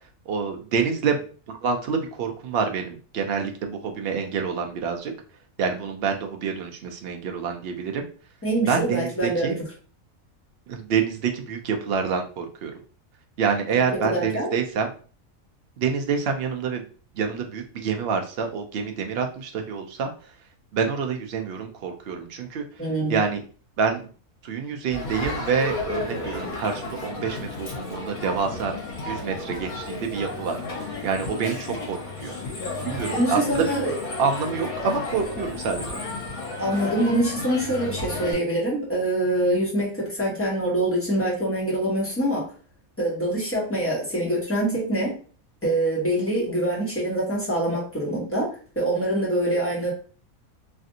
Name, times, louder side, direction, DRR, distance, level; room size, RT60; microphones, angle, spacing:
voice 1, 0.3-5.1 5.6-8.0 8.6-9.6 10.7-12.7 13.4-14.9 15.8-16.8 17.2-20.1 20.7-22.6 23.1-23.4 23.8-24.0 24.4-28.8 29.0-30.6 31.0-32.3 32.8-33.8 34.2-35.9, right 6 dB, 75° right, 4 dB, 0.5 m, -27 dB
voice 2, 8.4-9.5 14.0-14.5 22.8-23.2 33.1-33.9 36.6-42.4 43.0-45.1 45.6-48.5 48.7-49.9, right 1 dB, 10° left, -6 dB, 1.1 m, -24 dB
Crowd, 24.9-38.3, left 2 dB, 75° left, 1.6 m, -33 dB
3.3 x 2.5 x 2.6 m, 0.39 s
omnidirectional pair, 1.5 m